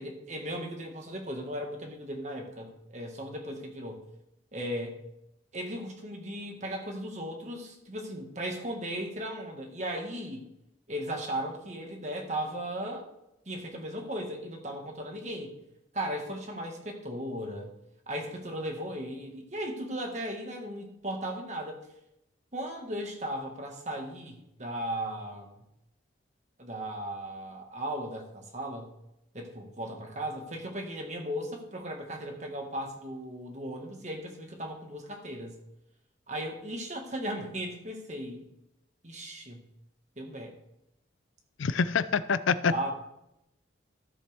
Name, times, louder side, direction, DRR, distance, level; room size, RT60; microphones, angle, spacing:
voice 1, 0.0-4.0 4.5-5.0 5.5-10.5 10.9-13.1 13.5-15.5 15.9-17.7 18.1-21.8 22.5-25.5 26.6-28.9 29.3-35.5 36.3-38.5 39.0-39.6 40.2-40.5 42.7-42.9, right 1 dB, 35° right, 2 dB, 1.7 m, -36 dB
voice 2, 41.6-42.9, left 5 dB, 80° left, 14 dB, 0.5 m, -26 dB
13.5 x 7.3 x 3.5 m, 0.84 s
head